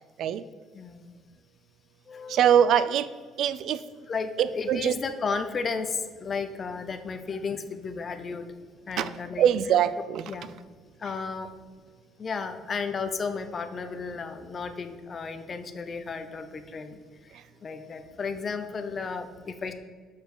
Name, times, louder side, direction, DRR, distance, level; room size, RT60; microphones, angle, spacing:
voice 1, 0.7-1.1 2.1-2.4 4.1-8.5 8.9-9.4 10.3-10.5 11.0-11.5 12.2-19.7, left 5 dB, 35° left, 8 dB, 0.7 m, -34 dB
voice 2, 2.3-3.1 3.4-3.8 4.4-4.9 9.0-9.1 9.4-10.3, right 9 dB, 65° right, 14 dB, 0.4 m, -23 dB
6.7 x 4.6 x 6.7 m, 1.5 s
cardioid pair, 120°, 0 cm